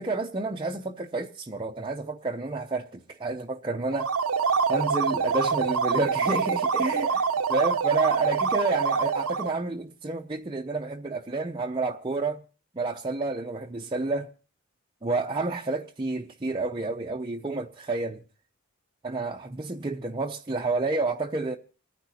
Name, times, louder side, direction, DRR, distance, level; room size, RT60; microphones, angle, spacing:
voice 1, 0.0-4.1 4.7-12.4 12.7-14.3 15.0-18.2 19.0-21.6, right 3 dB, 20° right, 0.6 m, -30 dB
sound 1, 3.9-9.6, right 5 dB, 70° right, 0.7 m, -26 dB
28.5 x 10.0 x 2.8 m
head